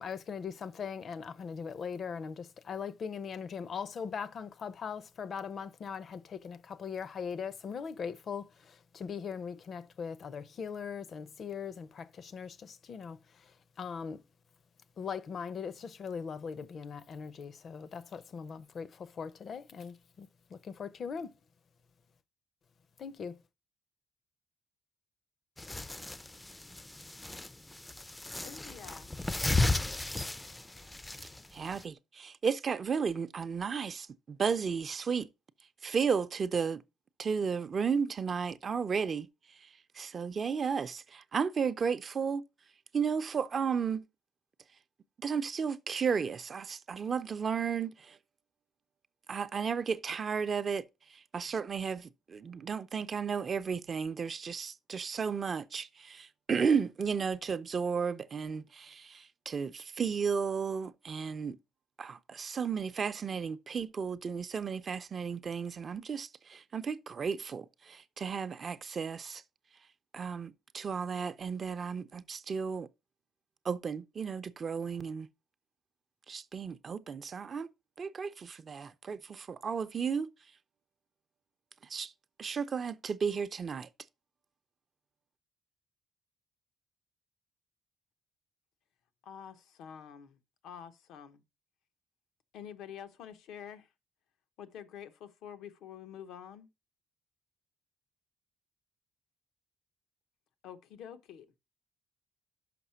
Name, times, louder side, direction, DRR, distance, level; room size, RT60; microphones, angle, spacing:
voice 1, 0.0-13.4 13.8-14.2 15.0-21.3 23.0-23.4, left 6 dB, 55° left, 0.6 m, -40 dB
sound 1, 25.6-31.8, left 2 dB, 15° left, 0.4 m, -34 dB
voice 2, 28.3-29.1 89.2-90.4 90.6-91.4 92.5-93.9 94.6-96.7 100.6-101.5, left 8 dB, 85° left, 0.8 m, -47 dB
voice 3, 31.5-35.3 35.8-36.8 37.2-39.3 39.6-39.7 40.0-42.4 42.9-44.0 45.2-48.2 49.3-50.8 51.1-61.6 62.0-69.4 70.1-72.9 73.6-75.3 76.3-77.7 78.0-80.3 81.9-82.1 82.4-83.9, right 6 dB, 45° right, 0.5 m, -33 dB
5.9 x 5.5 x 5.5 m
cardioid pair, 90°, 0 cm